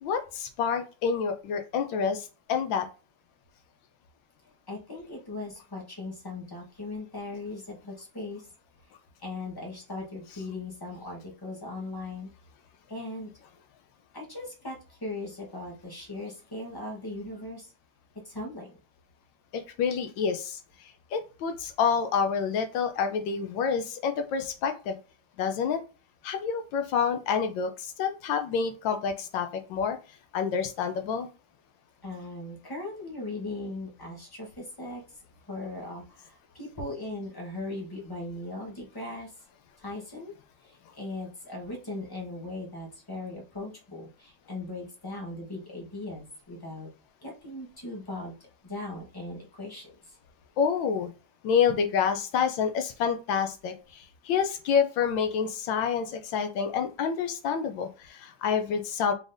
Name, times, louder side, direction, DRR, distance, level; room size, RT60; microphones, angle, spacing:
voice 1, 0.0-2.9 19.5-20.6 21.1-25.0 25.4-25.8 26.2-30.0 30.3-31.3 50.6-51.1 51.4-59.1, left 6 dB, 70° left, 7 dB, 1.2 m, -28 dB
voice 2, 4.7-8.5 9.2-12.3 12.9-13.3 14.1-17.7 18.2-18.7 32.0-35.0 35.5-39.3 39.8-40.3 40.6-46.9 47.2-48.3 48.6-49.9, left 2 dB, 25° left, -2 dB, 0.5 m, -38 dB
4.9 x 3.8 x 2.6 m, 0.33 s
omnidirectional pair, 2.4 m